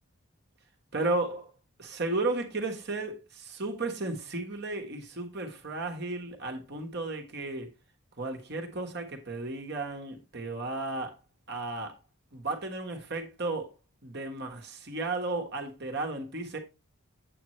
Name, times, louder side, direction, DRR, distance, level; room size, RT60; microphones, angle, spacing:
voice 1, 0.9-1.5 1.8-7.7 8.2-11.1 11.5-12.0 12.3-13.7 14.0-16.6, right 2 dB, 50° right, 1.5 m, -34 dB
8.5 x 7.8 x 3.2 m
head